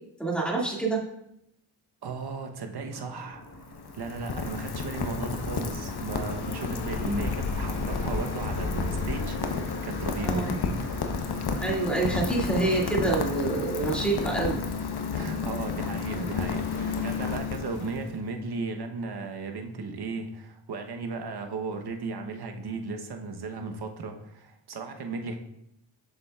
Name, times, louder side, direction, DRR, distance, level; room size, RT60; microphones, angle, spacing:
voice 1, 0.2-1.1 7.0-7.3 10.2-10.5 11.6-14.6, right 3 dB, ahead, -2 dB, 2.1 m, -27 dB
voice 2, 2.0-3.4 3.9-10.5 15.1-25.4, right 4 dB, 55° right, 5 dB, 1.0 m, -36 dB
sound 1, 2.9-17.4, left 2 dB, 35° left, 1.3 m, -43 dB
Rain, 3.3-18.2, left 5 dB, 55° left, 0.9 m, -31 dB
6.9 x 6.5 x 2.4 m, 0.81 s
cardioid pair, 50°, 47 cm